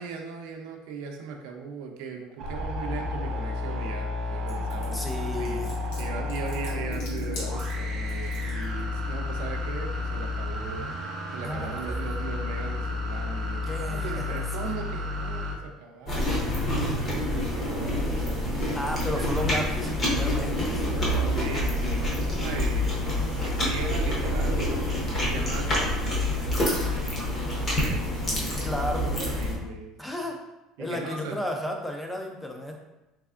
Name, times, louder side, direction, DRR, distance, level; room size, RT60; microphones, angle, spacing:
voice 1, 0.0-5.6 6.0-10.9 11.3-16.5 17.0-19.4 20.1-20.2 21.3-28.5 29.2-30.2 30.8-31.4, right 4 dB, 70° right, 2 dB, 0.5 m, -39 dB
sound 1, 2.4-15.5, left 2 dB, 30° right, 0.7 m, -31 dB
sound 2, 4.5-8.6, left 1 dB, 65° left, 1.3 m, -43 dB
voice 2, 4.9-6.1 6.6-6.7 11.4-12.1 13.7-14.7 18.7-21.1 28.6-29.1 30.0-30.4 30.8-32.8, left 1 dB, 5° left, 2 dB, 0.3 m, -33 dB
sound 3, 16.1-29.6, left 1 dB, 20° left, 0.7 m, -27 dB
3.4 x 3.3 x 2.4 m, 0.99 s
cardioid pair, 175°, 0 cm